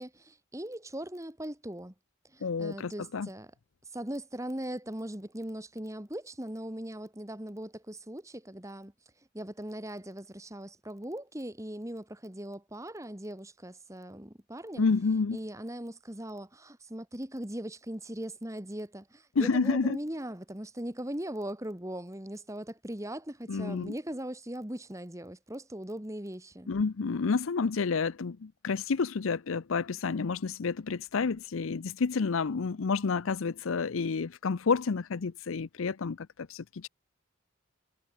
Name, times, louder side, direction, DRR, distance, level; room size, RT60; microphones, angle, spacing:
voice 1, 0.0-1.9 2.2-3.5 3.8-8.9 9.3-14.9 15.3-26.7, right 1 dB, 15° right, 1.9 m, -39 dB
voice 2, 2.4-3.3 14.8-15.4 19.4-20.0 23.5-23.9 26.7-36.9, left 4 dB, 75° left, 0.6 m, -29 dB
head